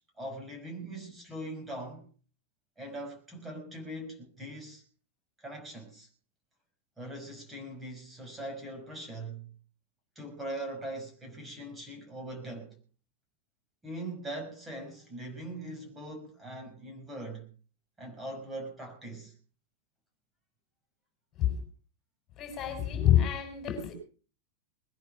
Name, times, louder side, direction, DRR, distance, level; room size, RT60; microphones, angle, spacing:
voice 1, 0.0-2.1 2.8-4.8 5.4-6.1 7.0-9.5 10.2-12.8 13.8-17.5 18.0-19.3, right 1 dB, 10° right, 2 dB, 5.9 m, -41 dB
voice 2, 22.4-23.9, left 11 dB, 30° left, 6 dB, 6.2 m, -27 dB
21.0 x 10.0 x 5.8 m, 0.39 s
figure-of-eight pair, 90°, 0 cm